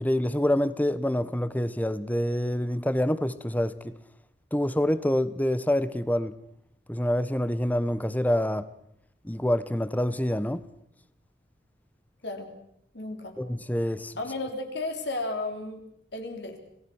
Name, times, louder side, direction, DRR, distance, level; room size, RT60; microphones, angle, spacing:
voice 1, 0.0-4.0 4.5-6.4 6.9-8.7 9.2-10.6 13.4-14.1, left 1 dB, 10° left, 0.9 m, -26 dB
voice 2, 12.9-13.3 14.2-15.8 16.1-16.6, left 2 dB, 75° left, 3.8 m, -33 dB
26.5 x 18.0 x 6.3 m
head